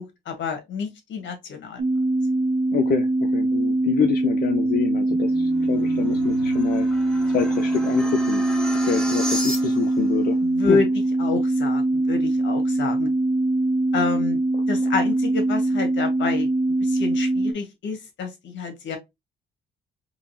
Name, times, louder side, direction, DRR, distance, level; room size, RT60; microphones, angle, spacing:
voice 1, 0.0-1.8 10.4-10.9 11.2-13.1 13.9-14.4 14.7-16.5 16.8-19.0, left 4 dB, 65° left, 1.5 m, -28 dB
sound 1, 1.8-17.5, right 2 dB, 45° right, 0.9 m, -22 dB
voice 2, 2.7-6.9 7.3-8.5 8.9-10.4 10.7-10.8, left 8 dB, 50° left, 0.6 m, -26 dB
sound 2, 4.9-10.0, equal, 5° left, 1.1 m, -34 dB
3.8 x 3.0 x 2.7 m
cardioid pair, 90°, 20 cm